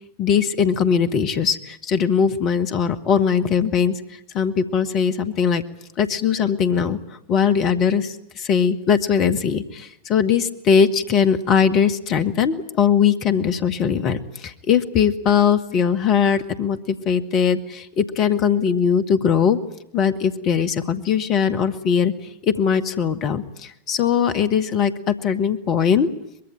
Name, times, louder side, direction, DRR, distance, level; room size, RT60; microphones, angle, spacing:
voice 1, 0.2-4.0 4.3-5.6 6.0-7.0 7.3-19.6 19.9-22.1 22.4-26.1, left 7 dB, 35° left, 10 dB, 1.8 m, -20 dB
24.0 x 21.5 x 9.2 m, 0.79 s
figure-of-eight pair, 90°, 0 cm